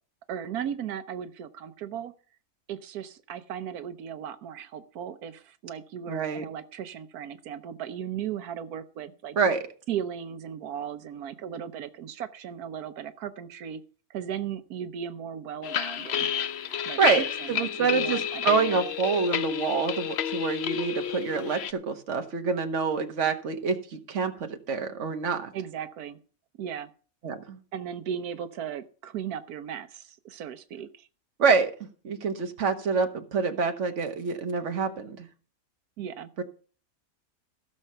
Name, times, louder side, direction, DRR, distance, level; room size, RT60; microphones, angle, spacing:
voice 1, 0.3-2.1 2.7-9.4 9.9-13.8 14.1-16.3 16.8-17.0 17.4-18.9 25.5-26.2 26.6-26.9 27.7-31.1 36.0-36.3, right 8 dB, 85° right, 10 dB, 1.3 m, -36 dB
voice 2, 6.1-6.4 9.4-9.6 17.0-25.5 27.2-27.6 31.4-31.7 32.0-35.3 36.4-36.5, right 5 dB, 55° right, 6 dB, 1.6 m, -27 dB
sound 1, 15.6-21.7, left 9 dB, 55° left, 0.8 m, -30 dB
16.5 x 6.5 x 5.6 m, 0.40 s
omnidirectional pair, 1.6 m